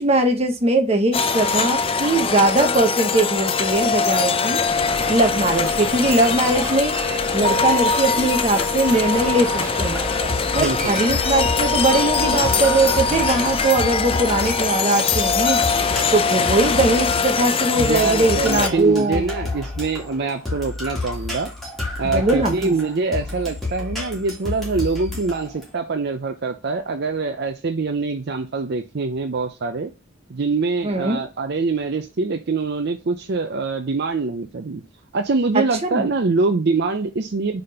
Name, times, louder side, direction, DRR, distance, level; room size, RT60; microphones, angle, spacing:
voice 1, 0.0-4.6 5.1-10.0 10.5-15.6 16.1-19.2 22.0-22.7 30.8-31.2 35.8-36.1, right 2 dB, 30° right, 1.0 m, -20 dB
sound 1, 1.1-18.7, left 5 dB, 25° left, 0.4 m, -22 dB
sound 2, 4.6-13.6, right 1 dB, 15° right, 1.5 m, -32 dB
sound 3, 9.1-25.7, left 2 dB, ahead, 2.3 m, -30 dB
voice 2, 10.6-11.0 17.8-21.5 22.0-29.9 30.3-34.8 35.1-37.6, right 4 dB, 55° right, 0.5 m, -24 dB
5.1 x 4.1 x 5.5 m
head